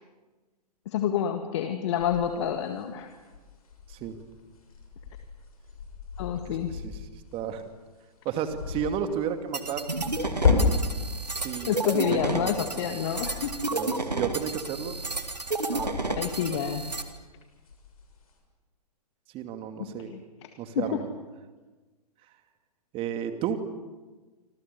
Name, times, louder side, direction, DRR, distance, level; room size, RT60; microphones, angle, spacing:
voice 1, 0.9-3.1 6.2-6.8 11.7-13.6 16.1-16.9 19.8-20.2 20.8-21.0, left 8 dB, 45° left, 6 dB, 1.9 m, -28 dB
sound 1, 2.0-7.6 8.2-8.9 9.7-12.5 12.9-15.3 15.6-17.2 17.6-18.3, left 4 dB, 60° left, 6.9 m, -32 dB
voice 2, 6.5-6.9 7.3-7.6 8.2-9.8 11.3-12.5 12.8-12.9 13.7-15.0 15.7-16.6 19.3-20.1 20.6-21.1 22.9-23.6, right 8 dB, 25° right, 8 dB, 2.4 m, -33 dB
sound 2, 9.5-17.0, right 2 dB, 80° right, 2.5 m, -31 dB
27.5 x 26.5 x 7.0 m, 1.3 s
figure-of-eight pair, 110°, 21 cm